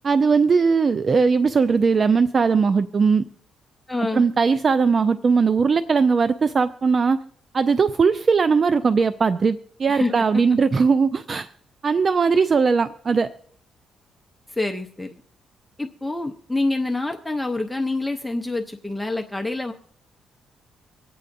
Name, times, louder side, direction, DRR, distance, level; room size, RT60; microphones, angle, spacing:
voice 1, 0.0-3.3 4.1-7.2 7.5-11.5 11.8-13.3, right 5 dB, 40° right, 13 dB, 0.4 m, -19 dB
voice 2, 3.9-4.2 9.9-10.1 14.5-15.1 15.8-19.7, left 2 dB, 5° left, 3 dB, 0.7 m, -26 dB
25.0 x 8.4 x 2.6 m, 0.67 s
cardioid pair, 90°, 0 cm